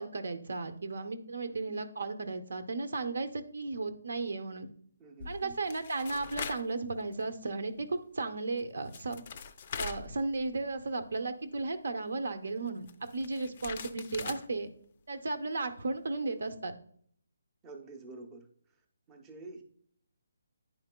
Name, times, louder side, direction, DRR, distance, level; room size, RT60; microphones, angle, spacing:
voice 1, 0.0-4.7 5.3-9.2 9.8-14.7 15.1-16.7, right 3 dB, 70° right, 9 dB, 0.8 m, -35 dB
voice 2, 1.4-1.8 5.0-5.6 17.6-18.5 19.1-19.6, right 3 dB, 10° right, 3 dB, 0.6 m, -48 dB
sound 1, 5.2-6.7 7.1-7.3 8.6-8.7 8.9-10.7 11.0-11.1 12.7-14.5, left 6 dB, 35° left, 0.4 m, -42 dB
10.0 x 4.6 x 2.2 m, 0.62 s
hypercardioid pair, 170°, 0 cm